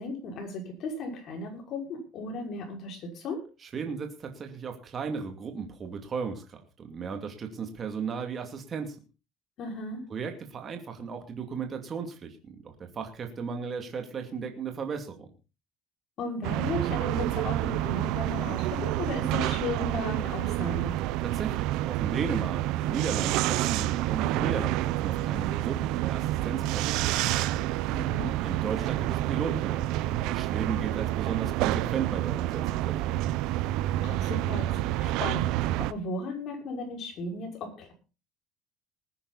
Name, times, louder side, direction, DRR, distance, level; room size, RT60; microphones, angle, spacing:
voice 1, 0.0-3.4 9.6-10.0 16.2-21.0 27.9-28.3 34.0-37.9, left 2 dB, 45° left, 3 dB, 5.9 m, -35 dB
voice 2, 3.7-9.0 10.1-15.3 21.2-27.5 28.4-29.8 30.2-33.4, right 6 dB, 30° right, 5 dB, 2.6 m, -35 dB
sound 1, 16.4-35.9, right 15 dB, 70° right, 0.7 m, -28 dB
19.5 x 9.9 x 4.1 m, 0.32 s
cardioid pair, 150°, 0 cm